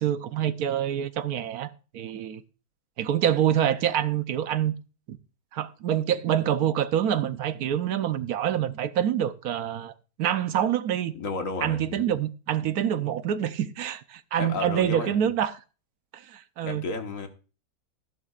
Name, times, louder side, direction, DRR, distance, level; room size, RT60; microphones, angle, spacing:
voice 1, 0.0-2.4 3.0-4.7 5.1-5.2 5.5-9.9 10.2-11.1 11.6-15.6 16.1-16.8, right 10 dB, 80° right, 1.3 m, -26 dB
voice 2, 11.1-12.1 14.4-15.3 16.7-17.3, left 3 dB, 60° left, 1.7 m, -33 dB
14.0 x 11.0 x 2.4 m
omnidirectional pair, 1.6 m